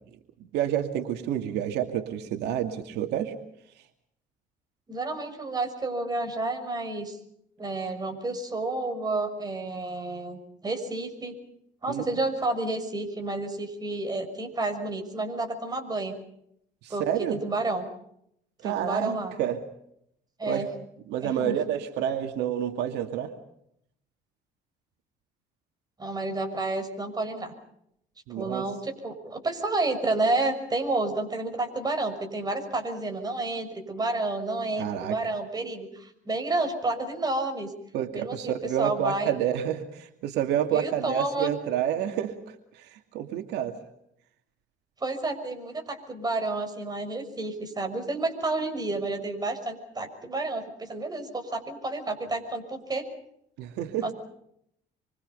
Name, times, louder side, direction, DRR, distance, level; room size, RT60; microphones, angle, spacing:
voice 1, 0.5-3.3 11.9-12.0 16.8-17.4 18.6-19.6 20.4-20.6 21.1-23.3 28.3-28.6 34.8-35.2 37.9-43.7 53.6-54.1, right 10 dB, 85° right, 6 dB, 2.4 m, -29 dB
voice 2, 4.9-7.2 7.6-11.4 11.8-16.2 16.9-17.9 18.6-19.3 20.4-20.7 21.2-21.6 26.0-27.5 28.3-37.7 38.1-39.5 40.7-41.5 45.0-53.0 54.0-54.1, right 2 dB, 25° right, 6 dB, 6.1 m, -30 dB
27.5 x 24.5 x 5.5 m, 0.74 s
cardioid pair, 110°, 17 cm